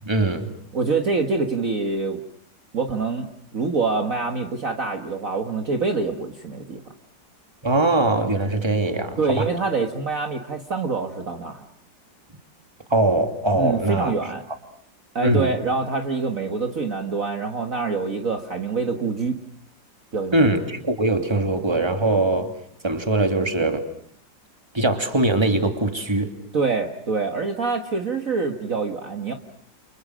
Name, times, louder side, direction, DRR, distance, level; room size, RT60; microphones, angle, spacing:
voice 1, 0.0-0.5 7.6-9.5 12.9-14.1 15.2-15.5 20.3-22.5 22.8-23.9 24.7-26.3, right 2 dB, 15° right, 6 dB, 2.8 m, -21 dB
voice 2, 0.7-2.2 2.7-6.8 9.2-11.6 13.5-14.4 15.2-19.4 20.1-20.6 26.5-29.3, right 4 dB, 45° right, 4 dB, 2.0 m, -25 dB
30.0 x 30.0 x 6.4 m, 0.65 s
omnidirectional pair, 2.0 m